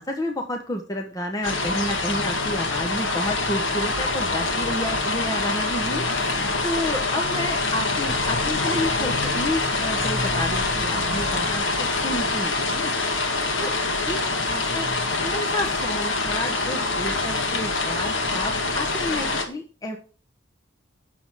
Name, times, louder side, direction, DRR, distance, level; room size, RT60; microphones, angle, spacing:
voice 1, 0.0-12.9 13.6-13.7 14.0-14.9 15.2-20.0, left 1 dB, 20° left, 2 dB, 1.1 m, -30 dB
sound 1, 1.4-19.4, left 3 dB, 80° left, 1.9 m, -25 dB
8.8 x 7.0 x 6.3 m, 0.38 s
head